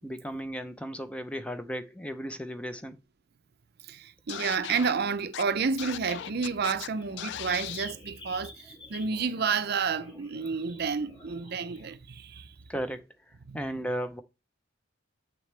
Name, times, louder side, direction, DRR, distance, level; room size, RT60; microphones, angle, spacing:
voice 1, 0.0-3.0 12.7-13.0 13.5-14.2, equal, 5° left, 0.6 m, -35 dB
voice 2, 3.8-12.5 13.5-13.7, right 5 dB, 50° right, 0.6 m, -30 dB
Scratching (performance technique), 4.3-4.9 5.3-5.4 5.8-6.9 7.2-7.9, left 12 dB, 60° left, 0.3 m, -37 dB
sound 1, 5.9-11.9, left 2 dB, 25° left, 1.8 m, -50 dB
8.3 x 6.4 x 3.3 m
head